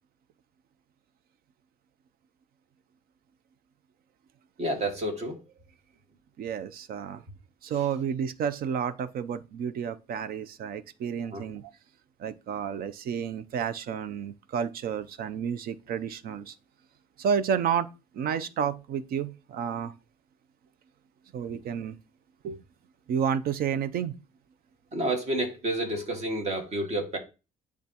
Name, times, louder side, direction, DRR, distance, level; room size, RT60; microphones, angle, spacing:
voice 1, 4.6-5.4 11.3-11.4 24.9-27.2, right 1 dB, 40° right, 1.9 m, -29 dB
voice 2, 6.4-7.2 7.6-11.7 12.2-16.6 17.2-17.9 18.1-19.9 21.3-21.9 22.4-22.6 23.1-24.1, right 7 dB, 60° right, 0.5 m, -31 dB
10.5 x 3.5 x 2.9 m
cardioid pair, 110°, 17 cm